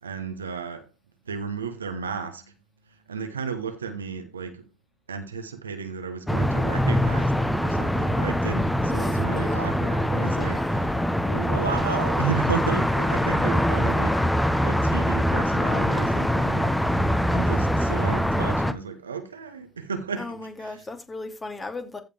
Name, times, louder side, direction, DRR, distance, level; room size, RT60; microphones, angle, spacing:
voice 1, 0.0-0.9 1.2-2.5 2.9-4.7 5.1-11.0 11.2-14.2 14.5-20.3 20.6-20.8, right 6 dB, 85° right, 1.0 m, -33 dB
sound 1, 6.3-18.7, equal, 5° left, 1.2 m, -23 dB
voice 2, 8.8-9.6 10.0-10.6 13.1-14.5 20.2-22.0, left 3 dB, 30° left, 2.6 m, -38 dB
15.0 x 5.2 x 3.3 m
figure-of-eight pair, 50°, 0 cm